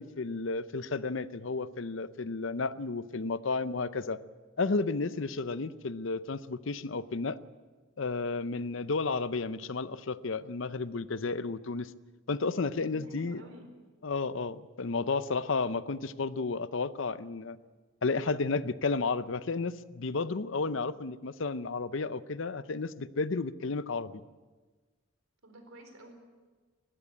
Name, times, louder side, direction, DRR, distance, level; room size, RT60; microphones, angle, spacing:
voice 1, 0.0-4.2 4.6-7.4 8.0-11.9 12.3-13.4 14.0-17.6 18.0-24.2, left 4 dB, 65° left, 15 dB, 0.7 m, -32 dB
voice 2, 12.7-13.7 25.4-26.1, right 1 dB, 85° right, 6 dB, 4.2 m, -51 dB
19.5 x 15.5 x 8.6 m, 1.3 s
head